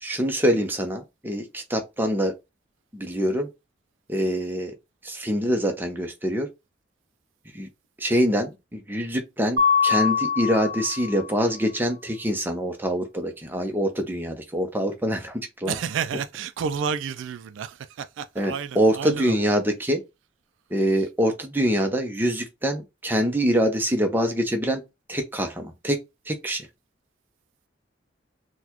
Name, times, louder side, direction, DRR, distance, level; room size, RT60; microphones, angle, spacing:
voice 1, 0.0-2.3 2.9-3.5 4.1-4.7 5.0-6.5 7.5-7.7 8.0-15.8 18.3-20.0 20.7-24.8 25.1-26.0 26.3-26.7, equal, 10° right, 0.7 m, -25 dB
Mallet percussion, 9.6-11.4, left 6 dB, 55° right, 1.0 m, -23 dB
voice 2, 15.7-19.4, right 6 dB, 75° right, 0.3 m, -30 dB
3.9 x 2.2 x 2.9 m
head